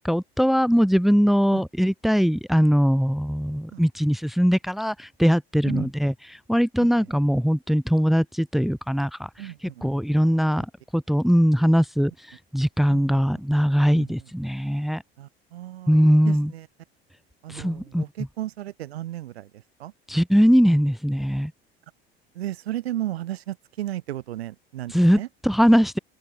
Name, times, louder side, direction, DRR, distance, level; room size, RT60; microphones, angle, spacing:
voice 1, 0.0-6.1 6.5-9.3 9.8-10.7 10.9-15.0 15.9-16.5 17.5-18.0 20.1-21.5 24.9-26.0, equal, ahead, 2.5 m, -21 dB
voice 2, 6.8-7.1 9.4-9.9 10.2-10.4 12.9-13.2 14.0-14.3 15.2-16.7 17.4-19.9 22.3-25.3, right 13 dB, 80° right, 6.0 m, -35 dB
open air
hypercardioid pair, 75°, 31 cm